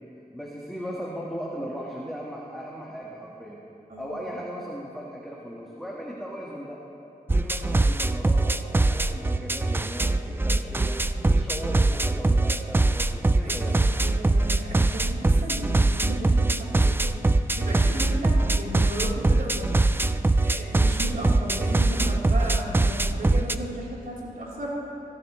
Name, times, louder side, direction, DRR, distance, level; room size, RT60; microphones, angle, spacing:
voice 1, 0.3-3.6 4.0-6.8 7.3-13.8, equal, ahead, -5 dB, 1.6 m, -37 dB
sound 1, 7.3-23.6, right 2 dB, 15° right, 0.3 m, -23 dB
voice 2, 13.4-24.7, right 1 dB, 70° right, -6 dB, 3.9 m, -35 dB
24.5 x 14.5 x 3.2 m, 2.8 s
wide cardioid pair, 135°, 15 cm